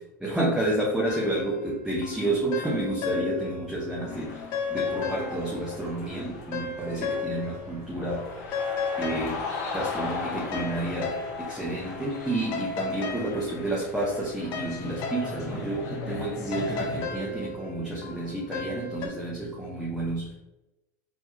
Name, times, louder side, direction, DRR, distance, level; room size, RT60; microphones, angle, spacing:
voice 1, 0.2-4.4 4.7-8.6 9.0-9.4 9.7-20.3, right 1 dB, 5° right, -5 dB, 1.2 m, -30 dB
sound 1, 1.1-3.7 4.0-7.7 8.0-19.1, left 4 dB, 50° left, 1.0 m, -35 dB
sound 2, 4.1-17.0, left 3 dB, 70° left, 1.5 m, -38 dB
4.5 x 4.0 x 2.9 m, 0.96 s
hypercardioid pair, 85°, 9 cm